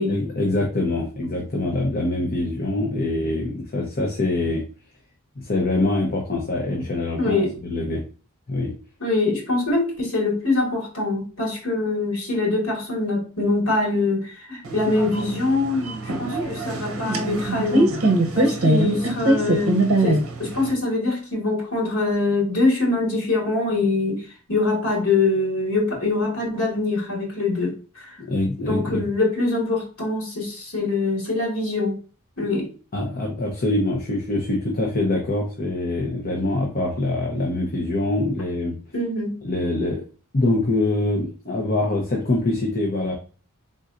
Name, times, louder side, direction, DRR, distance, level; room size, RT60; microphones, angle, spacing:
voice 1, 0.1-4.6 5.4-8.0 8.5-8.7 28.2-29.0 32.9-38.8 39.4-40.0 40.3-43.1, left 2 dB, 45° left, 0 dB, 0.8 m, -24 dB
voice 2, 7.2-7.5 9.0-18.0 18.3-24.2 24.5-28.1 28.6-32.0 32.4-32.7 38.9-39.4, left 2 dB, 70° left, -3 dB, 2.2 m, -24 dB
sound 1, 14.6-20.7, right 1 dB, 65° right, 0.7 m, -22 dB
4.0 x 3.8 x 2.5 m, 0.36 s
head